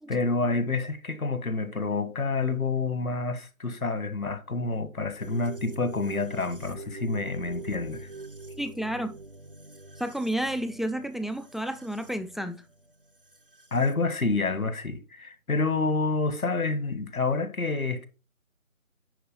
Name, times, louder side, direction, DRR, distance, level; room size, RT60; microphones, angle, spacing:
voice 1, 0.1-8.1 13.7-18.1, left 3 dB, 85° left, 1.7 m, -28 dB
sound 1, 5.2-13.9, right 2 dB, 40° right, 0.6 m, -44 dB
voice 2, 8.6-9.1 10.0-12.6, right 1 dB, ahead, 0.4 m, -31 dB
10.0 x 4.6 x 4.4 m
figure-of-eight pair, 170°, 42 cm